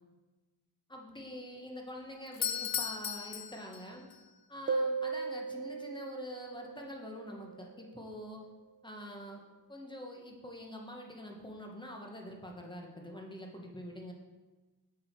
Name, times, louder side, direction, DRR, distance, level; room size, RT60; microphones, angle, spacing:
voice 1, 0.9-4.1 4.5-8.4 8.8-9.4 9.7-14.1, equal, 10° left, 0 dB, 1.2 m, -45 dB
Doorbell, 2.3-4.2, left 9 dB, 65° left, 0.6 m, -36 dB
sound 1, 4.7-8.0, right 4 dB, 30° right, 0.5 m, -37 dB
7.4 x 6.3 x 4.6 m, 1.2 s
wide cardioid pair, 115°, 38 cm